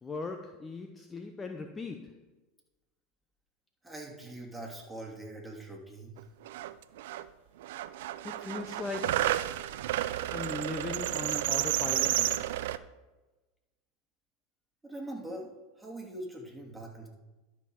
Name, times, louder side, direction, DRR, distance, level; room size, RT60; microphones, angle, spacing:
voice 1, 0.0-2.2 8.2-9.5 10.3-12.5, left 3 dB, 20° left, 6 dB, 0.8 m, -39 dB
voice 2, 3.8-6.2 14.8-15.5 15.8-17.1, right 1 dB, 5° right, -1 dB, 2.6 m, -42 dB
sound 1, 6.2-6.3 6.4-7.2 7.6-12.8, right 13 dB, 70° right, 0.4 m, -31 dB
12.0 x 5.9 x 4.8 m, 1.1 s
hypercardioid pair, 95°, 0 cm